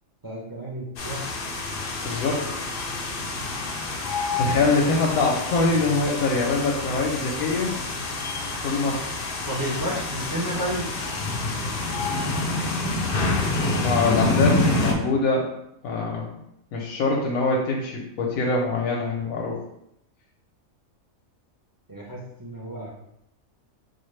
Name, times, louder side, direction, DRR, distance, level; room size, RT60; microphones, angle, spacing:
voice 1, 0.2-1.4 9.4-10.9 21.9-22.9, right 1 dB, 35° right, -4 dB, 0.3 m, -31 dB
sound 1, 1.0-14.9, left 2 dB, 60° left, 0.6 m, -27 dB
voice 2, 2.0-2.4 4.4-7.7 8.6-9.0 13.5-15.5 15.8-16.3 16.7-19.6, left 3 dB, 90° left, -2 dB, 1.0 m, -24 dB
4.1 x 2.3 x 3.1 m, 0.80 s
omnidirectional pair, 1.4 m